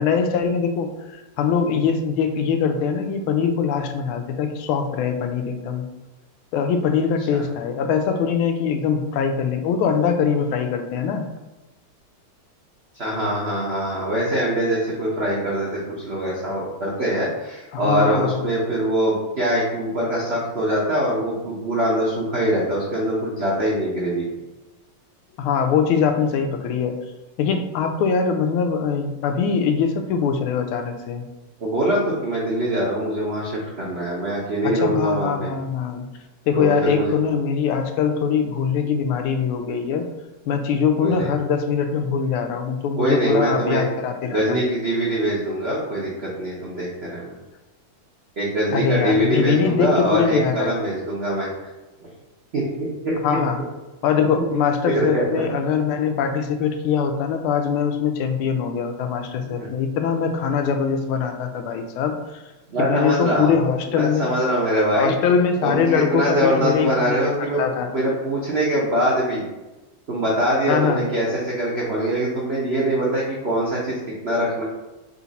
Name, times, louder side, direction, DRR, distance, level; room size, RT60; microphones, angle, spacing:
voice 1, 0.0-5.8 6.5-11.2 17.7-18.4 25.4-27.0 27.4-31.2 34.6-36.1 36.5-40.0 40.5-44.6 48.7-50.8 53.2-53.6 54.0-62.4 62.8-64.3 64.9-67.9 70.7-71.0, left 6 dB, 90° left, 6 dB, 1.4 m, -22 dB
voice 2, 12.9-24.2 31.6-35.5 36.5-37.1 41.0-41.3 43.0-43.8 44.3-47.3 48.4-51.5 52.0-52.1 52.5-52.7 53.0-53.1 54.4-54.5 54.8-55.4 59.4-59.7 62.7-63.6 63.9-65.1 65.6-67.6 67.9-69.4 70.1-74.0 74.2-74.6, right 1 dB, 70° right, -5 dB, 0.6 m, -23 dB
4.0 x 2.5 x 4.0 m, 1.1 s
omnidirectional pair, 2.3 m